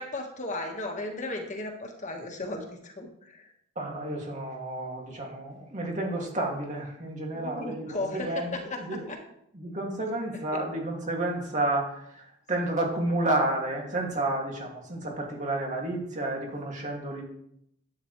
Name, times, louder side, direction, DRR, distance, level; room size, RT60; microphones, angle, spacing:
voice 1, 0.0-3.4 7.3-8.4 8.7-8.8 9.1-9.2, left 2 dB, 35° left, 2 dB, 1.6 m, -35 dB
voice 2, 3.8-9.1 9.5-17.2, right 1 dB, 35° right, 0 dB, 2.5 m, -31 dB
11.5 x 9.0 x 3.3 m, 0.73 s
head